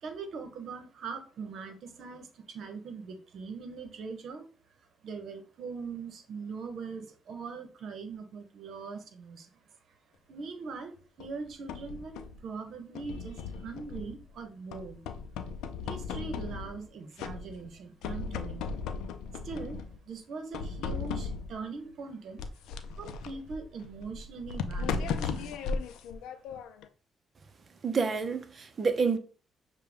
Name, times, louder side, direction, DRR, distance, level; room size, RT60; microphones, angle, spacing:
voice 1, 0.0-4.4 5.0-9.6 10.3-15.0 15.8-18.7 19.4-22.4 23.0-25.7, right 4 dB, 65° right, 0.9 m, -41 dB
sound 1, 11.2-12.4 13.0-14.3 14.7-16.9 17.2-17.7 18.0-20.0 20.5-21.6 22.4-26.9, left 5 dB, 90° left, 0.4 m, -37 dB
voice 2, 27.8-29.2, right 5 dB, 40° right, 0.7 m, -28 dB
6.7 x 2.2 x 3.4 m
cardioid pair, 90°, 0 cm